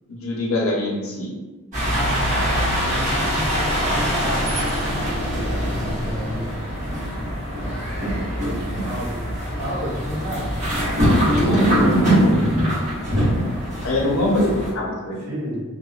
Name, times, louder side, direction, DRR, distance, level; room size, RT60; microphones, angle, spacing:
voice 1, 0.1-1.3 13.8-15.2, left 1 dB, 80° left, -2 dB, 0.6 m, -23 dB
sound 1, 1.7-14.7, equal, 40° right, 1.0 m, -22 dB
voice 2, 2.6-3.3 5.2-5.6 6.0-6.6 8.4-10.6 11.0-12.4 13.1-13.8 15.2-15.6, equal, 65° right, -5 dB, 0.7 m, -32 dB
2.8 x 2.1 x 2.3 m, 1.2 s
head